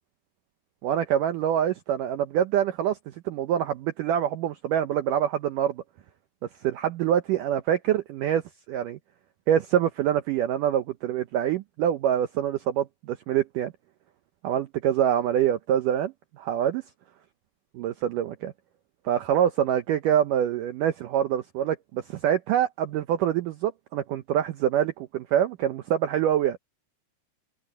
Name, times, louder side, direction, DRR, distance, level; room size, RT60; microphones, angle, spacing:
voice 1, 0.8-3.0 3.2-5.8 6.6-8.4 8.7-9.0 9.5-13.7 14.4-16.8 17.7-18.5 19.0-26.6, right 10 dB, 85° right, 1.8 m, -25 dB
open air
omnidirectional pair, 4.9 m